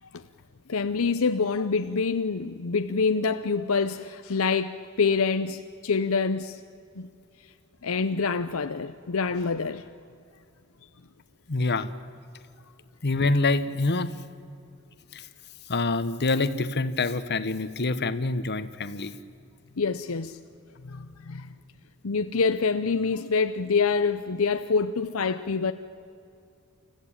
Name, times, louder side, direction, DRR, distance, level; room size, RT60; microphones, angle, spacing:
voice 1, 0.7-6.6 7.0-7.1 7.8-9.9 19.8-20.4 20.8-21.5 22.0-25.7, left 4 dB, 75° left, 0.7 m, -26 dB
voice 2, 11.5-11.9 13.0-14.1 15.1-15.2 15.7-19.1, left 3 dB, 50° left, 1.1 m, -26 dB
29.5 x 15.0 x 8.8 m
head